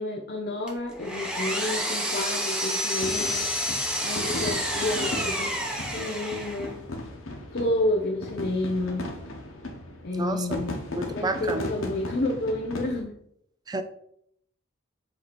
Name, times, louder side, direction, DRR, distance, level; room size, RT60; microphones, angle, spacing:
voice 1, 0.0-3.5 4.0-6.8 7.5-9.1 10.0-10.8 11.1-13.2, left 1 dB, 50° left, 2 dB, 0.6 m, -30 dB
Power tool, 0.7-6.7, equal, 5° right, 0.8 m, -29 dB
sound 1, 3.0-13.0, left 1 dB, 85° left, 1.1 m, -37 dB
voice 2, 10.1-11.7 13.7-13.8, right 2 dB, 20° right, 9 dB, 0.4 m, -31 dB
7.6 x 2.9 x 4.2 m, 0.72 s
head